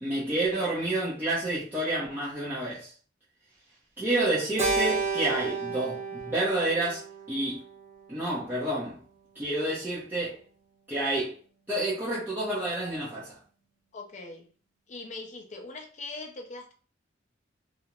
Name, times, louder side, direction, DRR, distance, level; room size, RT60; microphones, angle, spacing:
voice 1, 0.0-2.9 4.0-7.0 7.3-7.6 8.1-9.0 9.4-10.4 10.9-11.3 11.7-13.4, right 1 dB, 10° right, 0.6 m, -29 dB
Keyboard (musical), 4.6-9.0, right 4 dB, 35° right, 0.9 m, -33 dB
voice 2, 13.9-14.5 14.9-16.7, left 3 dB, 40° left, 0.5 m, -41 dB
2.4 x 2.0 x 2.9 m
head